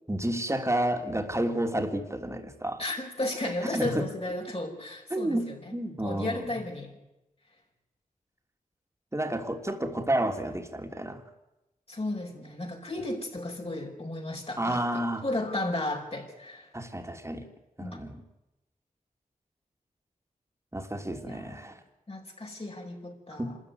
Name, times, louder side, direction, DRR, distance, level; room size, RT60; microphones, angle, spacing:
voice 1, 0.1-2.8 3.4-4.1 5.1-6.6 9.1-11.2 14.6-15.2 16.7-17.5 17.8-18.2 20.7-21.8 23.4-23.6, right 1 dB, 20° right, 5 dB, 3.2 m, -30 dB
voice 2, 2.8-6.9 11.9-16.7 17.8-18.0 21.3-21.8 22.1-23.5, left 2 dB, 45° left, 0 dB, 5.0 m, -34 dB
25.5 x 14.0 x 9.6 m, 0.97 s
cardioid pair, 45°, 15 cm